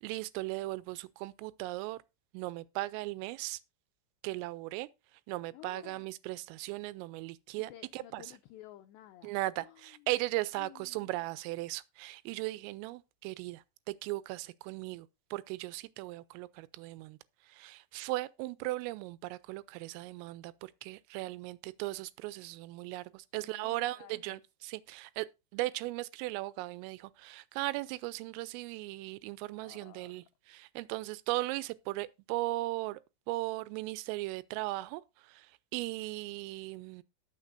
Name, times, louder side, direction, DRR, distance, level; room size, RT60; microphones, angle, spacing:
voice 1, 0.0-2.0 2.3-3.6 4.2-4.9 5.3-8.2 9.2-17.2 17.5-25.3 25.5-33.0 33.3-37.0, right 19 dB, 90° right, 3.3 m, -37 dB
voice 2, 5.5-6.1 7.5-10.1 10.5-11.3 23.3-24.4 29.5-30.2, left 14 dB, 90° left, 2.5 m, -54 dB
18.5 x 6.7 x 2.6 m
omnidirectional pair, 5.8 m